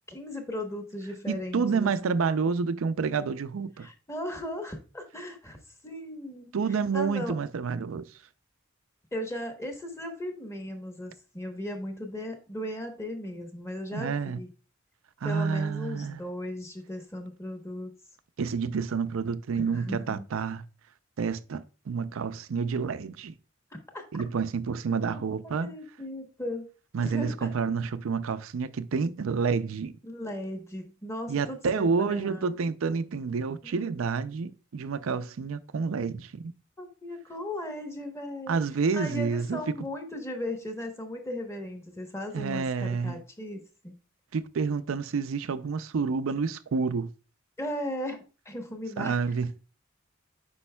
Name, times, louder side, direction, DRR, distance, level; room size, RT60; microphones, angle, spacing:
voice 1, 0.1-2.1 3.8-5.6 5.8-6.5 6.9-7.3 9.1-14.5 15.2-17.9 19.5-20.3 23.9-24.0 25.1-25.2 25.6-26.6 27.0-27.5 30.0-32.5 33.6-33.9 36.8-38.6 38.9-43.9 47.6-49.2, left 1 dB, 15° left, 1.0 m, -37 dB
voice 2, 1.3-3.9 6.5-8.0 13.9-14.4 15.2-16.2 18.4-20.6 21.2-23.3 24.1-25.7 26.9-30.0 31.3-36.5 38.5-39.6 42.3-43.2 44.3-47.1 49.0-49.5, right 5 dB, 80° right, 0.4 m, -29 dB
8.4 x 5.3 x 2.2 m
head